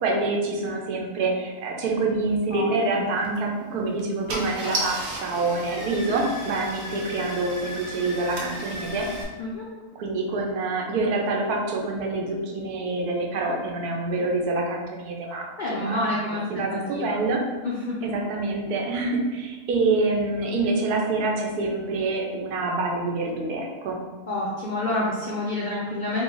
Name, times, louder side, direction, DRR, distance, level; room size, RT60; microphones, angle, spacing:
voice 1, 0.0-9.1 10.0-17.4 18.0-24.0, right 3 dB, 80° right, 0 dB, 1.2 m, -26 dB
Car / Engine starting, 3.2-3.4 4.0-4.1 4.3-9.2, right 1 dB, 65° right, 1.1 m, -34 dB
voice 2, 9.4-9.7 15.6-17.2 17.6-18.0 24.3-26.2, left 1 dB, 70° left, -5 dB, 0.4 m, -28 dB
3.6 x 2.5 x 3.8 m, 1.3 s
omnidirectional pair, 1.6 m